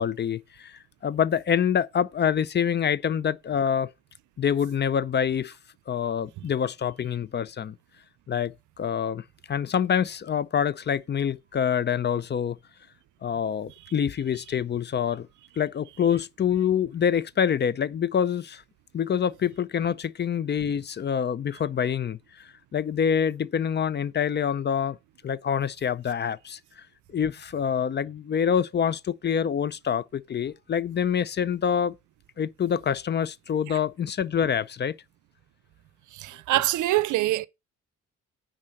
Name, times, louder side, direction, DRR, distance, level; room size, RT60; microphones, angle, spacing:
voice 1, 0.0-3.9 4.4-5.6 5.9-7.8 8.3-12.6 13.2-15.3 15.6-18.6 18.9-25.0 25.2-26.8 27.1-31.9 32.4-35.0, left 8 dB, 35° left, 0.5 m, -26 dB
voice 2, 36.1-37.5, right 16 dB, 75° right, 0.6 m, -25 dB
9.8 x 3.8 x 6.4 m
cardioid pair, 90°, 30 cm